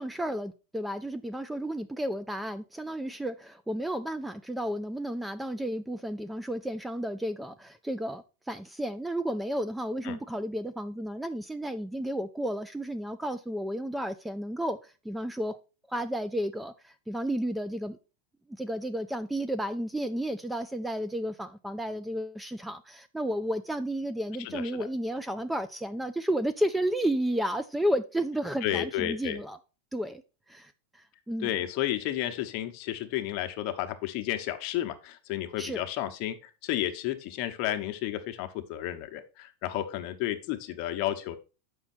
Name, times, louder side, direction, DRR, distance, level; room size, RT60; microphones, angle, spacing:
voice 1, 0.0-15.6 15.9-18.0 18.5-29.6 29.9-30.2 30.5-31.5 35.6-35.8, equal, 5° right, 0.4 m, -32 dB
voice 2, 24.4-24.9 28.6-29.4 31.4-41.4, left 13 dB, 45° left, 1.0 m, -32 dB
7.1 x 5.5 x 4.2 m
supercardioid pair, 140°, 0 cm